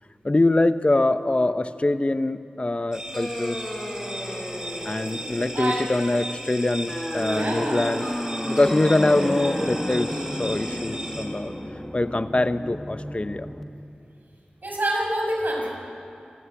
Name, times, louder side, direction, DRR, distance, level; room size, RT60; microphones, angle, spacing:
voice 1, 0.2-3.6 4.8-8.1 8.4-11.5 11.9-13.5, left 2 dB, 40° left, 11 dB, 1.0 m, -23 dB
sound 1, 2.9-11.2, right 1 dB, 25° right, 4.7 m, -37 dB
sound 2, 3.1-13.6, equal, 15° left, 1.8 m, -32 dB
voice 2, 5.5-5.8 7.2-7.9 14.6-15.7, right 1 dB, 65° right, -1 dB, 6.5 m, -27 dB
27.5 x 14.5 x 9.9 m, 2.6 s
wide cardioid pair, 45°, 3 cm